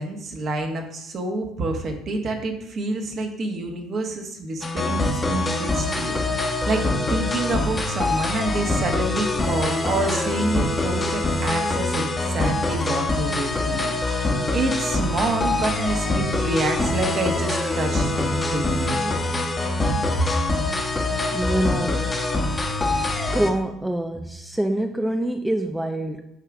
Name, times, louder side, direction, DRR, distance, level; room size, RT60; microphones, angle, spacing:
voice 1, 0.0-19.1 20.2-20.3, right 2 dB, 45° right, 3 dB, 1.4 m, -28 dB
sound 1, 4.6-23.5, left 2 dB, 20° left, 1.1 m, -24 dB
voice 2, 21.3-22.1 23.3-26.3, right 1 dB, 5° right, 6 dB, 0.4 m, -25 dB
9.0 x 4.6 x 3.6 m, 0.83 s
supercardioid pair, 90°, 0 cm